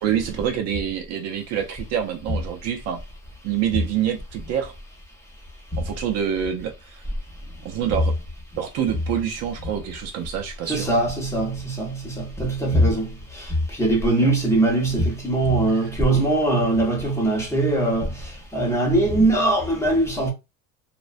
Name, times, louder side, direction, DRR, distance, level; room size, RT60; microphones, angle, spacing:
voice 1, 0.0-3.0 3.4-4.7 5.8-7.0 7.6-8.1 8.6-10.9 14.2-14.3 15.7-15.9, right 9 dB, 50° right, 0.4 m, -26 dB
voice 2, 10.7-20.3, right 2 dB, 10° left, 0.6 m, -21 dB
2.4 x 2.1 x 2.4 m
cardioid pair, 150°, 35 cm